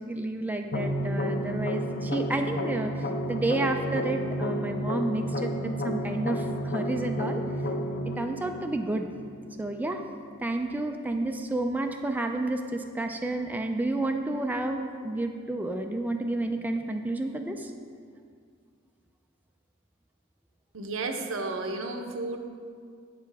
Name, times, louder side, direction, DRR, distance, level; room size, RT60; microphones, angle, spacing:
voice 1, 0.0-7.4 8.1-9.1 9.6-10.0 10.4-17.7, right 2 dB, 10° right, 4 dB, 0.3 m, -30 dB
sound 1, 0.7-9.7, equal, 45° left, 0.5 m, -31 dB
voice 2, 20.7-22.4, right 3 dB, 80° right, 5 dB, 0.7 m, -32 dB
8.0 x 6.8 x 3.4 m, 2.1 s
head